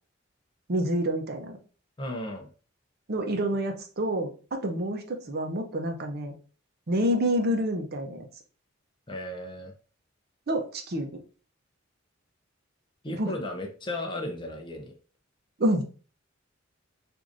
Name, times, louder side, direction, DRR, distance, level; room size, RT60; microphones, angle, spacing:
voice 1, 0.7-1.6 3.1-6.3 6.9-8.2 10.5-11.1 13.1-13.3 15.6-15.8, equal, 55° right, 4 dB, 0.7 m, -28 dB
voice 2, 2.0-2.5 9.1-9.7 13.0-15.0, left 1 dB, 25° left, 3 dB, 0.5 m, -35 dB
4.6 x 2.6 x 2.5 m, 0.37 s
head